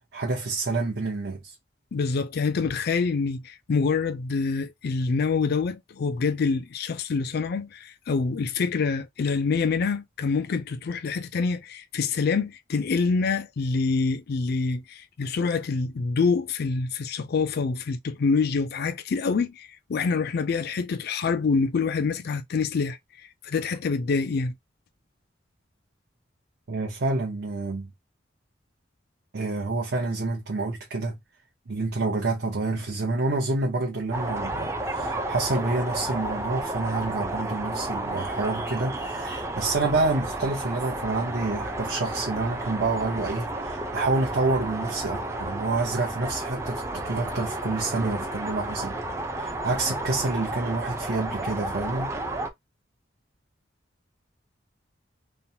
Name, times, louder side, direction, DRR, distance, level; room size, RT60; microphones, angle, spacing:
voice 1, 0.1-1.5 26.7-27.9 29.3-31.2 31.7-49.0 49.4-52.1, right 3 dB, 65° right, 0.8 m, -28 dB
voice 2, 1.9-23.0 23.4-24.5, left 4 dB, 60° left, 0.4 m, -26 dB
sound 1, 34.1-52.5, right 2 dB, 15° right, 0.4 m, -32 dB
3.0 x 2.1 x 2.7 m
head